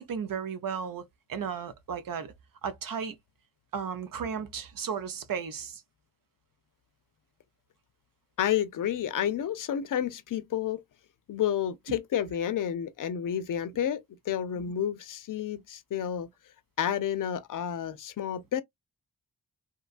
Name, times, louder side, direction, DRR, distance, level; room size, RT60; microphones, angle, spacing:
voice 1, 0.0-2.3 2.6-3.2 3.7-5.8 11.9-12.0, right 7 dB, 65° right, 0.7 m, -35 dB
voice 2, 8.4-10.8 11.3-16.3 16.8-18.6, left 9 dB, 60° left, 0.5 m, -30 dB
2.8 x 2.3 x 2.4 m
cardioid pair, 75°, 36 cm